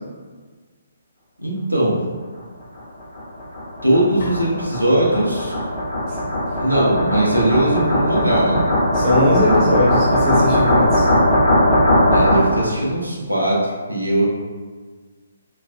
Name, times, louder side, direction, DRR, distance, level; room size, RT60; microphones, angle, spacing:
voice 1, 1.4-2.0 3.8-5.6 6.6-8.6 12.1-14.3, right 1 dB, 90° right, -5 dB, 0.6 m, -19 dB
sound 1, 2.8-12.7, left 1 dB, 80° left, 1.0 m, -19 dB
sound 2, 4.2-6.0, left 1 dB, 50° left, 0.6 m, -36 dB
voice 2, 8.9-11.1, equal, 25° right, -8 dB, 1.0 m, -19 dB
3.1 x 2.4 x 2.2 m, 1.5 s
figure-of-eight pair, 135°, 0 cm